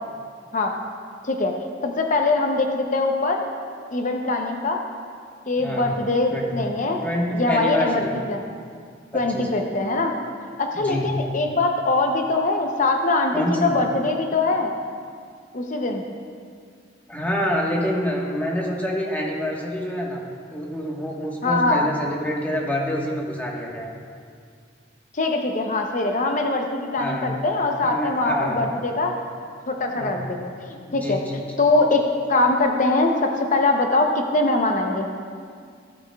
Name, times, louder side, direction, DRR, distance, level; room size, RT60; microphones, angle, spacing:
voice 1, 1.8-3.5 3.9-4.8 5.5-7.0 7.3-8.4 9.1-10.1 10.6-14.7 15.5-16.0 21.4-21.9 25.1-29.1 29.7-31.2 31.6-32.0 32.3-35.1, left 2 dB, 45° left, 3 dB, 0.7 m, -22 dB
voice 2, 5.6-6.0 6.3-6.6 7.0-8.1 9.1-9.4 10.7-11.1 13.3-13.7 17.1-20.2 20.5-23.9 27.0-27.3 27.8-28.6 29.9-30.2 30.9-31.4, equal, 10° left, -2 dB, 1.3 m, -27 dB
16.5 x 8.6 x 2.3 m, 2.2 s
head